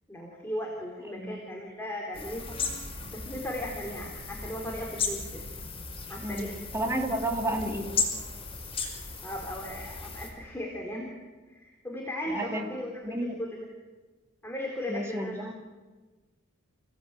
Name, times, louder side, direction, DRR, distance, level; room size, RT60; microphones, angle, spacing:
voice 1, 0.1-2.6 3.1-5.4 6.1-6.5 9.2-11.1 11.5-13.6 14.4-15.5, left 1 dB, 10° left, -1 dB, 3.8 m, -37 dB
sound 1, 2.1-10.3, left 4 dB, 25° left, 5.4 m, -36 dB
voice 2, 6.2-7.9 12.3-12.7 13.0-13.3 14.9-15.5, right 1 dB, 10° right, 1 dB, 2.9 m, -31 dB
29.5 x 18.0 x 9.0 m, 1.3 s
head